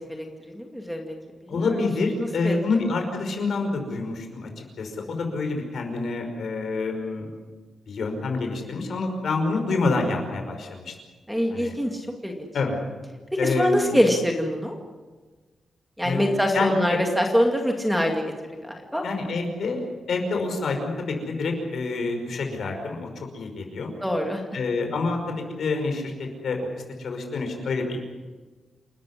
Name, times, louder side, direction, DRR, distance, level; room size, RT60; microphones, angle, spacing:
voice 1, 0.1-1.1 1.5-1.8 2.1-2.5 11.3-12.5 13.3-14.7 16.0-18.2 18.5-19.0 24.0-24.4, equal, ahead, 2 dB, 2.2 m, -24 dB
voice 2, 1.5-7.3 7.9-10.9 11.5-11.7 12.5-12.8 13.4-14.0 16.0-17.0 19.0-23.9 24.5-26.6 27.0-28.0, left 3 dB, 55° left, 3 dB, 5.4 m, -27 dB
29.0 x 13.5 x 10.0 m, 1.3 s
wide cardioid pair, 175°, 0 cm